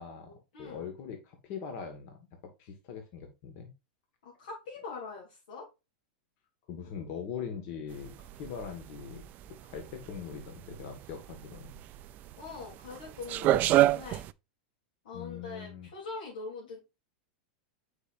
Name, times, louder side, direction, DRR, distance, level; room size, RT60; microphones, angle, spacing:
voice 1, 0.0-0.3 0.6-3.7 6.7-9.2 9.6-11.7 15.1-15.9, left 7 dB, 50° left, 5 dB, 1.7 m, -41 dB
voice 2, 4.2-5.7 12.4-14.2 15.0-16.8, left 4 dB, 80° left, -5 dB, 3.3 m, -42 dB
sound 1, 7.9-14.3, right 15 dB, 35° right, 0.3 m, -29 dB
8.0 x 5.1 x 2.6 m, 0.26 s
supercardioid pair, 135°, 5 cm